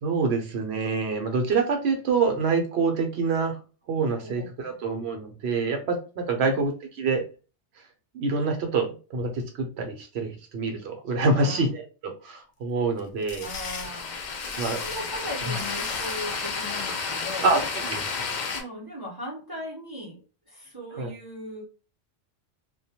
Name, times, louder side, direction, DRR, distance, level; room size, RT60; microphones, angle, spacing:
voice 1, 0.0-3.6 3.9-6.7 7.0-7.2 8.1-8.9 9.1-13.4 14.6-14.8 17.4-17.6 17.9-18.1 21.0-21.1, right 4 dB, 65° right, 4 dB, 0.8 m, -26 dB
voice 2, 4.2-4.8 6.3-6.6 11.3-11.6 13.4-14.2 14.5-17.5 18.5-21.6, left 1 dB, 25° right, -5 dB, 0.5 m, -38 dB
sound 1, 13.0-16.3, left 5 dB, 80° left, 0.9 m, -39 dB
sound 2, 13.4-18.6, left 5 dB, 60° left, 0.5 m, -32 dB
2.2 x 2.1 x 2.8 m, 0.34 s
omnidirectional pair, 1.3 m